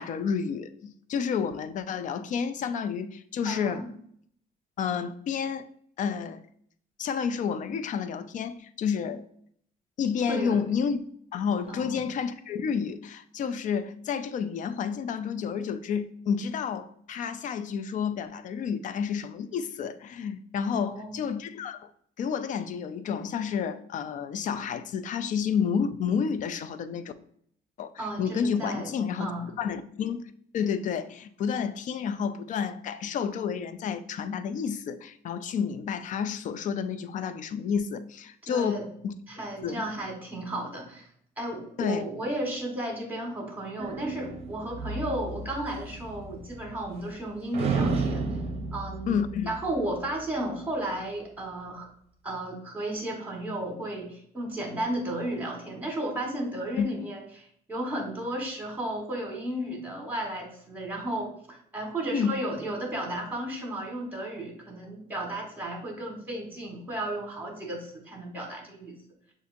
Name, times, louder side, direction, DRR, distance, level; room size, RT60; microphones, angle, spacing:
voice 1, 0.0-3.8 4.8-5.7 6.0-6.4 7.0-9.2 10.0-11.0 11.3-21.9 22.2-27.1 27.8-29.3 29.6-30.2 30.5-39.1 39.6-39.8 41.8-42.0 49.1-49.5 56.8-56.9 62.1-62.3, left 6 dB, 50° left, 0.4 m, -30 dB
voice 2, 3.4-3.8 10.3-10.6 11.7-12.0 20.8-21.2 28.0-28.9 29.2-29.5 38.4-38.9 39.3-41.1 41.4-48.3 48.7-51.9 52.2-68.9, right 1 dB, 10° right, 1.5 m, -34 dB
sound 1, 43.8-47.2 47.5-50.2, right 4 dB, 40° right, 0.6 m, -33 dB
6.5 x 2.6 x 2.6 m
cardioid pair, 110°, 17 cm